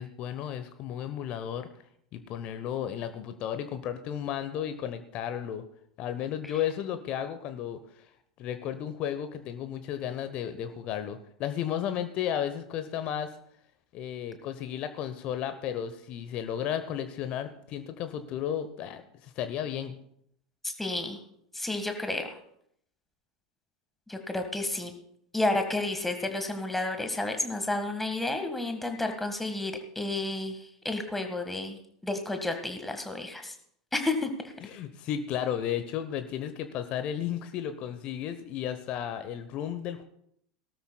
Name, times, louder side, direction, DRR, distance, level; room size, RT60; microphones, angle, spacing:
voice 1, 0.0-1.7 2.1-5.6 6.0-7.8 8.4-13.3 13.9-20.0 34.6-40.0, left 10 dB, 40° left, 10 dB, 1.0 m, -33 dB
voice 2, 20.6-21.2 21.5-22.3 24.1-24.9 25.3-30.6 30.8-33.5 33.9-34.5, left 2 dB, 5° left, 6 dB, 1.8 m, -31 dB
18.5 x 12.5 x 2.4 m, 0.72 s
figure-of-eight pair, 80°, 3 cm